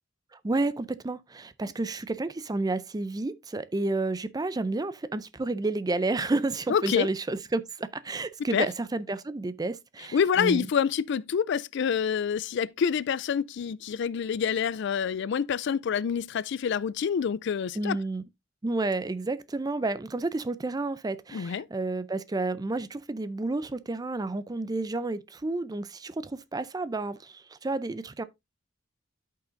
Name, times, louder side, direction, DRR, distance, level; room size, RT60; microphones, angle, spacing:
voice 1, 0.4-10.7 17.7-18.2 18.6-28.2, right 2 dB, 20° right, 0.4 m, -30 dB
voice 2, 6.7-7.1 8.5-8.7 10.1-18.0 21.3-21.7, left 7 dB, 65° left, 0.4 m, -27 dB
13.0 x 5.6 x 2.6 m
head